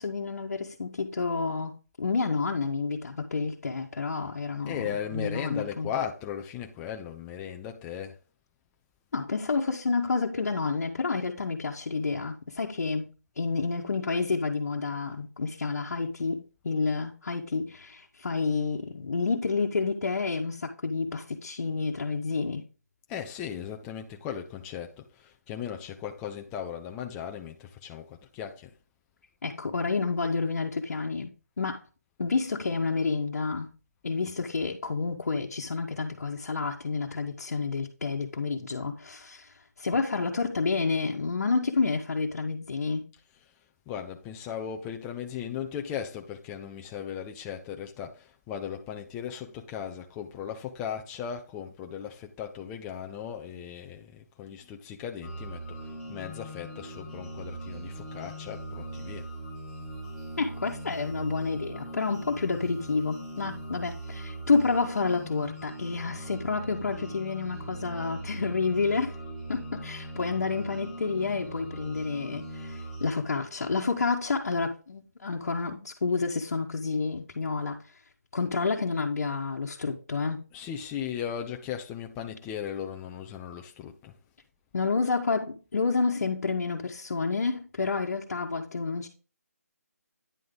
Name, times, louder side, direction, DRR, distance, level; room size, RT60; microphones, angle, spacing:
voice 1, 0.0-5.9 9.1-22.6 29.4-31.3 31.6-31.8 32.2-33.7 34.0-43.1 60.4-69.1 69.5-77.8 78.3-80.5 84.7-89.1, left 4 dB, 65° left, 1.2 m, -29 dB
voice 2, 4.7-8.2 23.1-28.7 43.9-55.8 56.1-59.3 80.5-84.1, left 8 dB, 10° left, 0.4 m, -37 dB
sound 1, 55.2-73.1, right 1 dB, 5° right, 2.0 m, -40 dB
9.5 x 3.7 x 5.2 m
figure-of-eight pair, 160°, 9 cm